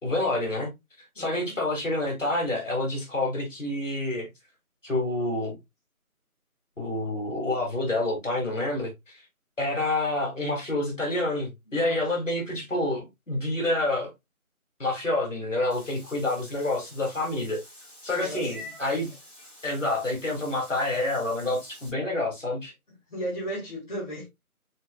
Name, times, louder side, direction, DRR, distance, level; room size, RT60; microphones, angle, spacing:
voice 1, 0.0-0.7 1.2-4.3 4.8-5.6 6.8-9.2 9.6-14.1 14.8-17.6 18.0-19.1 19.6-22.7, left 2 dB, 60° left, 2.8 m, -28 dB
voice 2, 1.2-1.6 11.7-12.2 18.1-18.7 23.1-24.3, right 1 dB, 35° left, 2.0 m, -36 dB
Meow / Water / Bathtub (filling or washing), 15.7-21.9, left 1 dB, 10° right, 2.6 m, -48 dB
4.5 x 4.3 x 2.4 m
figure-of-eight pair, 165°, 44 cm